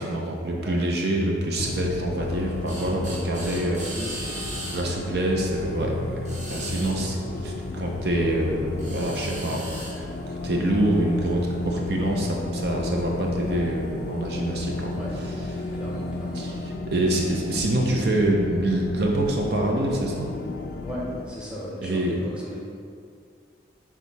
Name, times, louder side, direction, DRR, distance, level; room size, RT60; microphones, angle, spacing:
voice 1, 0.0-3.8 4.7-6.2 6.5-7.2 7.4-15.0 15.6-15.7 16.3-16.6 16.8-20.3 21.8-22.2, right 1 dB, 55° right, 0 dB, 0.6 m, -26 dB
sound 1, 1.6-21.3, left 2 dB, 50° left, 0.3 m, -33 dB
sound 2, 2.2-16.7, right 1 dB, 40° right, 1.2 m, -42 dB
voice 2, 3.3-4.4 5.0-5.1 7.3-7.4 12.2-12.4 14.9-15.2 15.7-16.6 17.0-17.1 20.8-22.6, equal, 5° right, -6 dB, 0.9 m, -36 dB
Bass guitar, 5.8-12.0, right 3 dB, 75° right, 1.3 m, -44 dB
6.4 x 3.6 x 4.1 m, 2.3 s
head